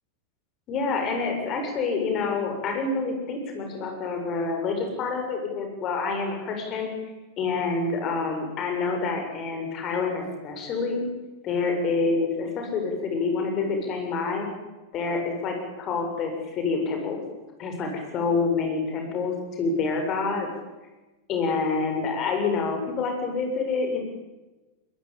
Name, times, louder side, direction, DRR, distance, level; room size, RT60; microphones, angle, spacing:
voice 1, 0.7-6.9 7.4-11.1 11.4-14.5 14.9-17.2 17.6-20.5 21.3-24.0, left 4 dB, 35° left, 3 dB, 7.6 m, -27 dB
22.0 x 22.0 x 9.1 m, 1.1 s
figure-of-eight pair, 90°, 0 cm